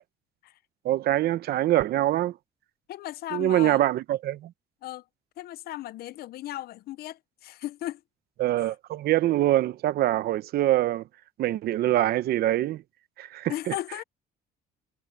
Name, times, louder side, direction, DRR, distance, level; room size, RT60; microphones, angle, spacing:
voice 1, 0.8-2.4 3.3-4.5 8.4-11.1 11.4-12.8 13.2-13.7, right 14 dB, 65° right, 0.9 m, -24 dB
voice 2, 2.9-3.8 4.8-5.0 5.4-8.0 8.6-8.7 13.5-14.0, left 15 dB, 65° left, 0.7 m, -36 dB
cardioid pair, 110°, 17 cm